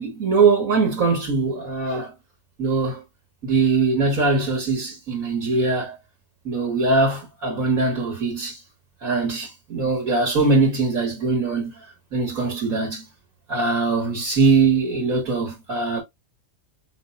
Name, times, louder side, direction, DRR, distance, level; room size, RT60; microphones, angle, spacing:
voice 1, 0.0-2.1 2.6-3.0 3.4-6.0 6.4-8.6 9.0-11.7 12.1-13.1 13.5-16.0, right 3 dB, 55° right, 2.1 m, -21 dB
5.7 x 3.3 x 2.6 m
omnidirectional pair, 1.7 m